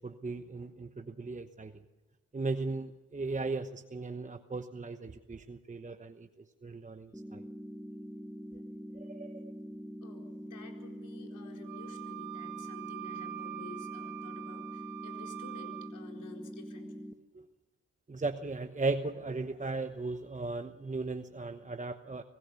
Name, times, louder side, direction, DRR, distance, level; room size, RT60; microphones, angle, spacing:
voice 1, 0.0-1.8 2.3-6.3 6.6-7.4 8.9-9.5 17.3-17.5 18.1-22.2, right 3 dB, 25° right, 8 dB, 1.0 m, -37 dB
sound 1, 7.1-17.1, equal, 5° right, 1.2 m, -44 dB
voice 2, 10.0-17.0, left 4 dB, 75° left, 2 dB, 4.3 m, -52 dB
Wind instrument woodwind instrument, 11.6-15.9, right 15 dB, 85° right, 1.9 m, -44 dB
25.5 x 15.5 x 7.0 m, 1.2 s
cardioid pair, 60°, 31 cm